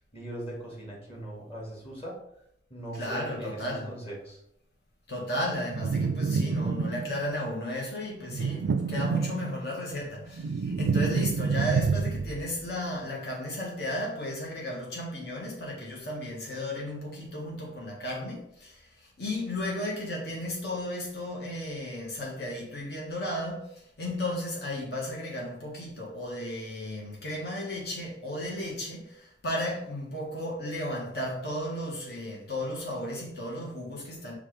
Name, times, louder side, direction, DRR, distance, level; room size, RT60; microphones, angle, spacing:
voice 1, 0.1-2.2 2.7-4.4, right 1 dB, 35° left, -3 dB, 2.5 m, -40 dB
voice 2, 2.9-3.9 5.1-34.3, left 1 dB, 65° left, -2 dB, 1.8 m, -34 dB
sound 1, 5.7-7.3 8.3-9.8 10.1-12.5, right 5 dB, 75° right, 0.4 m, -28 dB
5.9 x 3.7 x 5.1 m, 0.74 s
head